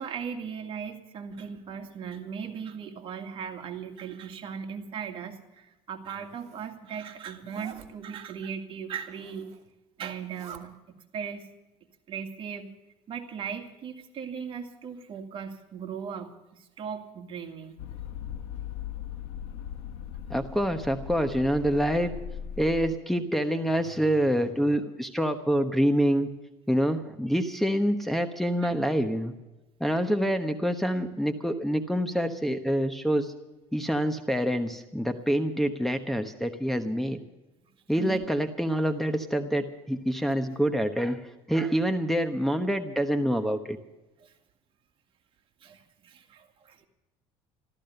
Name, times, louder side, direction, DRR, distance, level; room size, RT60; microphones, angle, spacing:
voice 1, 0.0-9.5 10.0-10.8 11.1-11.4 12.1-12.7 13.1-17.8 28.6-28.7 38.0-38.3 44.2-44.3 45.6-46.8, right 7 dB, 45° right, 4 dB, 2.2 m, -38 dB
Zipper (clothing), 6.0-6.7 7.4-7.9 9.0-9.7 10.1-10.6, right 9 dB, 60° right, 2.4 m, -49 dB
sound 1, 17.8-22.9, left 9 dB, 70° left, 1.3 m, -39 dB
voice 2, 20.3-22.1 22.6-26.3 26.7-29.3 29.8-33.3 33.7-37.2 37.9-43.8, equal, ahead, 4 dB, 1.1 m, -26 dB
14.0 x 13.5 x 6.7 m, 1.0 s
cardioid pair, 115°, 12 cm